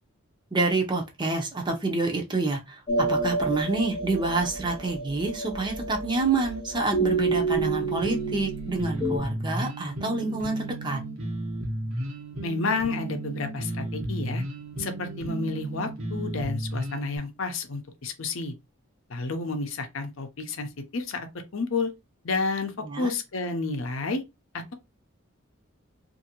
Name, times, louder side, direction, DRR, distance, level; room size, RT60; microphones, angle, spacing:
voice 1, 0.5-2.8 3.1-11.0 22.8-23.1, right 3 dB, 20° right, 0.5 m, -28 dB
sound 1, 2.9-9.2, right 3 dB, 25° left, 0.6 m, -29 dB
sound 2, 7.6-17.2, right 1 dB, 80° right, 1.0 m, -34 dB
voice 2, 12.4-14.4 14.8-18.5 19.1-21.3 21.5-21.9 22.2-24.2 24.5-24.7, left 3 dB, 70° left, 0.6 m, -30 dB
2.6 x 2.6 x 2.8 m
head